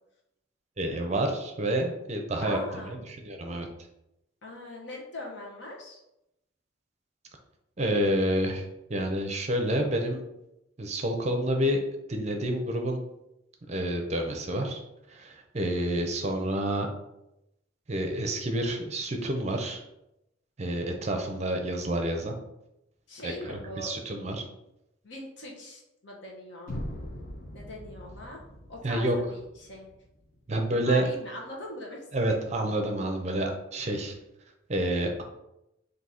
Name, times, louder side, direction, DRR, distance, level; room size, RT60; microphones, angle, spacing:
voice 1, 0.8-3.7 7.8-10.2 10.8-11.8 12.1-13.0 13.7-14.8 15.1-16.9 17.9-19.8 20.6-22.3 23.2-24.5 28.8-29.2 30.5-31.0 32.1-34.2 34.7-35.2, right 1 dB, 35° right, 3 dB, 0.6 m, -29 dB
voice 2, 2.4-3.0 4.4-6.0 23.1-23.9 25.0-26.7 27.5-28.4 28.7-29.9 30.8-32.4, left 1 dB, 65° left, -1 dB, 1.0 m, -41 dB
sound 1, 26.7-30.6, equal, 45° left, 0.6 m, -41 dB
3.9 x 2.7 x 4.2 m, 0.86 s
head